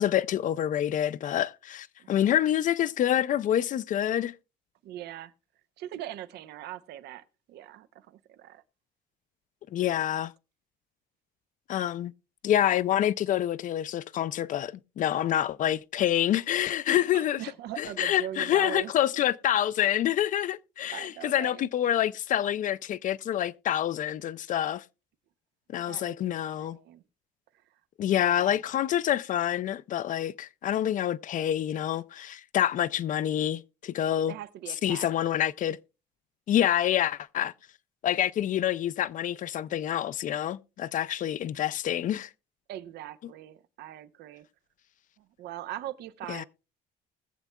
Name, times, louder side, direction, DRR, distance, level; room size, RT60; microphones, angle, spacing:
voice 1, 0.0-4.3 9.7-10.3 11.7-12.1 12.4-17.4 17.8-24.8 25.7-26.8 28.0-34.3 34.8-35.8 36.5-37.5 38.0-42.3 46.3-46.4, left 11 dB, 50° left, 0.4 m, -27 dB
voice 2, 4.8-5.3 5.8-8.6 16.9-19.2 20.9-21.6 25.8-27.0 28.2-28.6 34.3-35.1 42.7-44.5 45.2-46.4, right 12 dB, 75° right, 0.7 m, -41 dB
20.5 x 7.2 x 2.2 m
cardioid pair, 110°, 17 cm